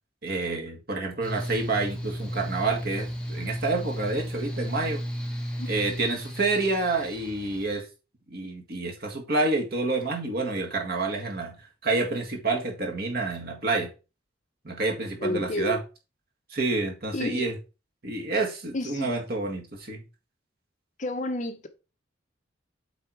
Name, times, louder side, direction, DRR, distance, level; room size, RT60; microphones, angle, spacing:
voice 1, 0.2-5.0 5.7-7.9 8.3-13.9 14.6-15.8 16.5-17.5 18.0-20.0, right 3 dB, 50° right, 1.8 m, -28 dB
Mechanical fan, 1.2-7.6, equal, 5° left, 1.5 m, -34 dB
voice 2, 15.2-15.8 17.1-17.6 18.7-19.1 21.0-21.7, left 2 dB, 40° left, 0.8 m, -30 dB
8.1 x 4.0 x 4.6 m
head